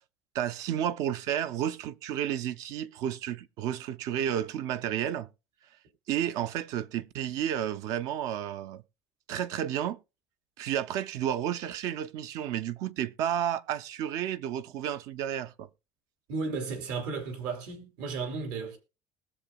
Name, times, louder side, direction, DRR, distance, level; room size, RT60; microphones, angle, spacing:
voice 1, 0.3-5.3 6.1-8.8 9.3-10.0 10.6-15.7, right 10 dB, 55° right, 0.6 m, -31 dB
voice 2, 16.3-18.8, right 4 dB, 75° right, 2.9 m, -34 dB
20.5 x 6.9 x 2.3 m
cardioid pair, 170°, 7 cm